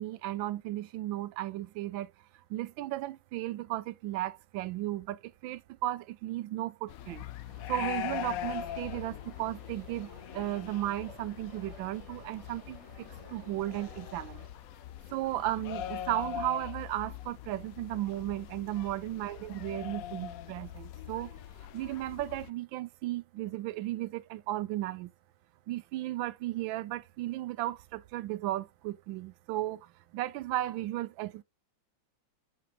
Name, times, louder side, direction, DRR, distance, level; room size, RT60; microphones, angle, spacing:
voice 1, 0.0-2.1 2.5-7.2 7.7-14.5 15.1-21.3 21.7-25.1 25.7-31.4, right 15 dB, 85° right, 1.3 m, -35 dB
sound 1, 6.9-22.5, left 11 dB, 80° left, 0.8 m, -42 dB
sound 2, 7.5-14.5, right 1 dB, 20° right, 1.9 m, -55 dB
8.4 x 6.7 x 2.3 m
omnidirectional pair, 2.1 m